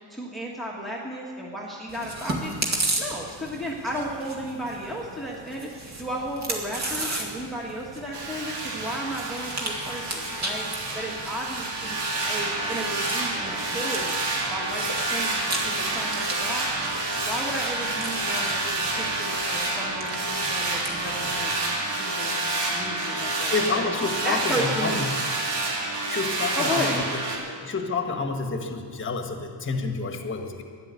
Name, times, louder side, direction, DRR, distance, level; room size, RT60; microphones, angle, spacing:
voice 1, 0.1-2.5 3.0-12.0 12.3-14.1 14.5-16.7 17.2-23.8 24.2-25.0 26.5-27.0, equal, ahead, -3 dB, 1.4 m, -34 dB
Chewing mastication, 1.9-21.5, right 2 dB, 35° right, 2.1 m, -36 dB
sound 1, 8.1-27.4, right 2 dB, 65° right, 2.7 m, -28 dB
voice 2, 23.5-25.1 26.1-27.1 27.5-30.6, left 4 dB, 25° left, 5 dB, 1.4 m, -29 dB
13.0 x 11.0 x 8.2 m, 2.1 s
cardioid pair, 150°, 46 cm